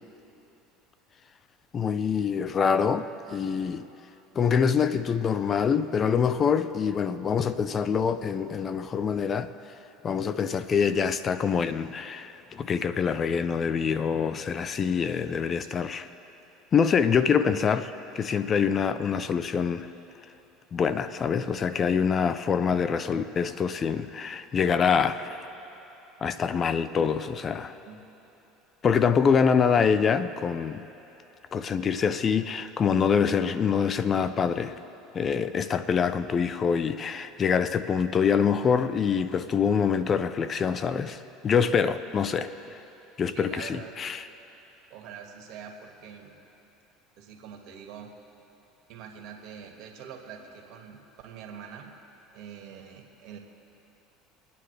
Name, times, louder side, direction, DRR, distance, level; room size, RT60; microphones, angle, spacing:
voice 1, 1.7-3.9 4.4-9.5 10.0-16.1 16.7-19.9 20.7-25.5 26.2-27.8 28.8-30.8 31.5-34.8 35.1-42.8 43.2-44.2, left 6 dB, 35° left, 0.5 m, -25 dB
voice 2, 43.3-44.0 44.9-46.4 47.2-48.1 48.9-51.9 52.3-53.4, right 7 dB, 65° right, 1.9 m, -44 dB
26.0 x 9.4 x 3.3 m
hypercardioid pair, 90°, 0 cm